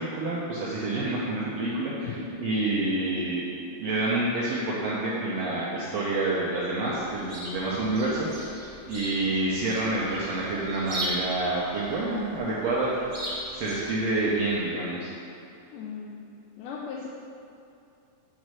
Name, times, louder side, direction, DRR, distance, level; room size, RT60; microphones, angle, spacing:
voice 1, 0.0-3.5 3.8-8.3 8.9-12.9 13.5-15.1, right 2 dB, 75° right, -7 dB, 1.5 m, -28 dB
voice 2, 1.9-2.4 15.7-16.3 16.6-17.1, left 6 dB, 80° left, -3 dB, 2.1 m, -37 dB
Chirp tweet, 6.9-14.5, right 1 dB, 40° right, 1.5 m, -38 dB
7.3 x 3.1 x 6.1 m, 2.8 s
omnidirectional pair, 3.8 m